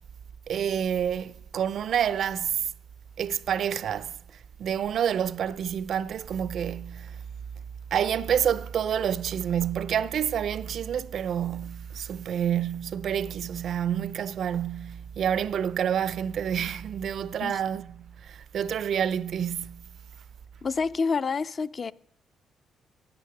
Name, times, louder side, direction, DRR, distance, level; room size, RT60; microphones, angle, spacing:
voice 1, 0.5-2.7 3.2-4.1 4.6-7.2 7.9-19.8, right 9 dB, 65° right, 0.4 m, -28 dB
voice 2, 20.6-21.9, left 5 dB, 40° left, 0.3 m, -28 dB
9.7 x 9.0 x 6.5 m
cardioid pair, 90°, 0 cm